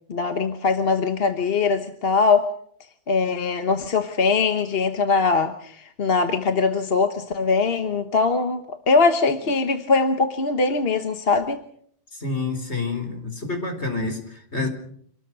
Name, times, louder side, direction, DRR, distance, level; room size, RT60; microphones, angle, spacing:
voice 1, 0.1-2.5 3.1-11.6, left 4 dB, 60° left, 7 dB, 1.5 m, -21 dB
voice 2, 12.1-14.7, left 3 dB, 85° left, 6 dB, 4.6 m, -28 dB
26.5 x 19.5 x 6.2 m, 0.65 s
omnidirectional pair, 1.1 m